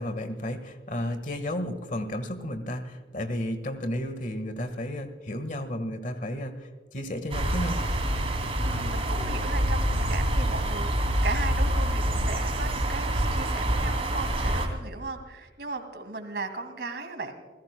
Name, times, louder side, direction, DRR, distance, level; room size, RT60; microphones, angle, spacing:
voice 1, 0.0-7.8, left 1 dB, 45° left, 10 dB, 1.6 m, -33 dB
sound 1, 7.3-14.7, right 1 dB, 30° right, 2.8 m, -26 dB
voice 2, 8.6-17.4, right 3 dB, 60° right, 7 dB, 2.2 m, -36 dB
29.0 x 16.0 x 2.2 m, 1.5 s
head